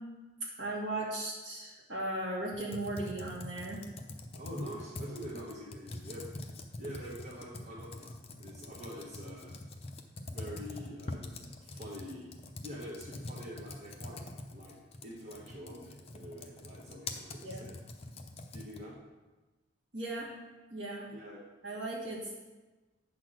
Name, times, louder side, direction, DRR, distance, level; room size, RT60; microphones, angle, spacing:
voice 1, 0.4-3.8 17.4-17.7 19.9-20.3 20.7-21.1 21.6-22.3, right 2 dB, 60° right, -4 dB, 2.1 m, -37 dB
Computer keyboard, 2.5-19.0, left 2 dB, 30° left, 0.6 m, -45 dB
voice 2, 4.3-6.3 6.8-8.1 8.4-9.6 10.3-12.3 12.6-14.2 14.5-14.8 15.0-17.8 18.5-19.0 21.1-21.5, equal, 35° right, -6 dB, 1.2 m, -45 dB
8.3 x 4.0 x 6.2 m, 1.2 s
head